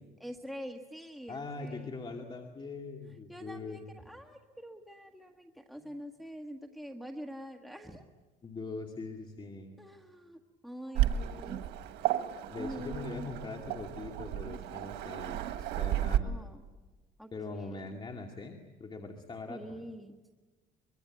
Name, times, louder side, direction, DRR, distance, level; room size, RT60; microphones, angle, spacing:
voice 1, 0.2-1.9 3.1-8.1 9.8-11.6 12.6-13.3 16.2-16.6 17.2-17.9 19.5-20.2, equal, ahead, 3 dB, 1.5 m, -45 dB
voice 2, 1.3-3.8 5.8-5.9 8.4-9.8 12.5-15.4 15.8-16.4 17.3-19.8, left 3 dB, 30° left, 2 dB, 2.4 m, -42 dB
Waves surf, 10.9-16.2, right 12 dB, 90° right, 1.5 m, -33 dB
24.5 x 23.5 x 9.1 m, 1.3 s
cardioid pair, 110°, 17 cm